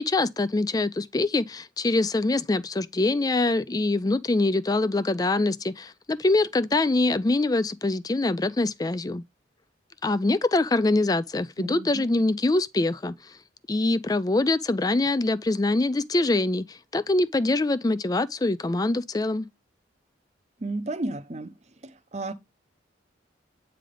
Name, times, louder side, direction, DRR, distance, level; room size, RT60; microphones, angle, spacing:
voice 1, 0.0-9.2 10.0-13.1 13.7-19.5, left 2 dB, 20° left, 0.3 m, -24 dB
voice 2, 11.6-12.1 20.6-21.5 22.1-22.3, right 2 dB, 35° right, 0.7 m, -32 dB
8.9 x 3.4 x 3.7 m
head